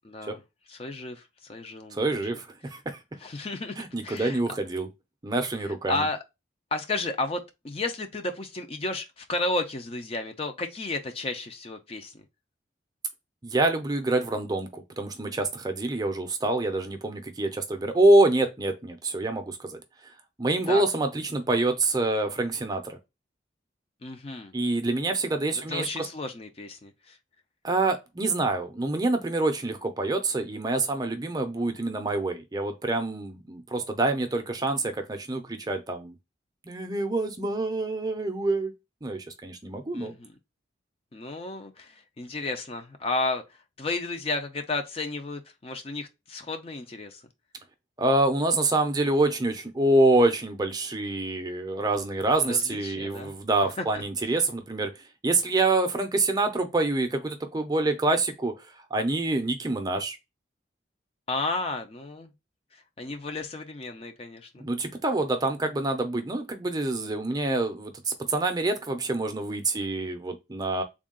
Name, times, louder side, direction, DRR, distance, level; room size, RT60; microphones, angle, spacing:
voice 1, 0.0-0.4 0.7-2.4 3.2-3.8 4.0-4.4 5.9-6.2 6.7-12.1 20.7-20.8 24.0-24.5 25.5-27.2 39.9-40.3 41.1-43.4 43.8-47.2 52.4-53.3 53.8-54.0 61.3-62.3 63.0-64.6, left 2 dB, 30° left, 0.4 m, -33 dB
voice 2, 1.9-3.0 3.8-4.9 5.2-6.1 13.4-19.8 20.4-23.0 24.5-26.1 27.6-36.1 36.7-38.7 39.0-40.1 48.0-54.9 55.2-58.5 58.9-60.2 64.6-70.8, right 2 dB, 20° right, 0.5 m, -26 dB
3.6 x 2.3 x 3.6 m
head